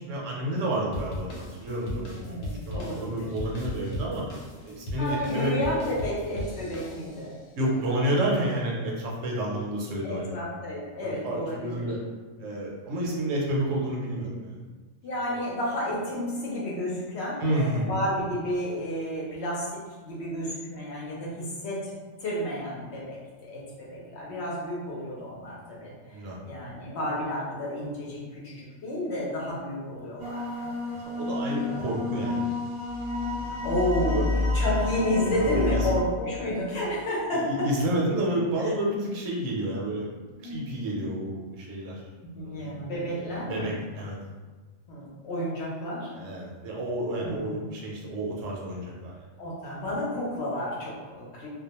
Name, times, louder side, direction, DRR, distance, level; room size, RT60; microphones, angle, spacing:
voice 1, 0.0-4.2 4.6-5.5 7.6-10.4 11.0-12.0 12.4-14.7 17.4-18.0 26.1-26.4 30.9-32.5 34.0-34.7 35.4-35.9 37.3-40.1 40.4-42.0 42.4-42.9 43.2-44.2 46.1-49.3, right 1 dB, 75° right, -3 dB, 1.0 m, -30 dB
sound 1, 0.9-7.4, equal, 85° left, 1.0 m, -38 dB
voice 2, 2.2-3.3 5.0-7.3 7.9-8.0 10.0-11.9 15.0-19.7 20.0-21.9 22.2-30.7 31.6-31.9 33.6-37.4 40.4-40.6 42.3-43.7 44.9-46.1 47.2-47.5 49.4-51.5, left 1 dB, 60° left, -5 dB, 0.8 m, -31 dB
sound 2, 30.2-36.0, left 2 dB, 50° right, 0.3 m, -29 dB
2.3 x 2.2 x 2.8 m, 1.4 s
omnidirectional pair, 1.4 m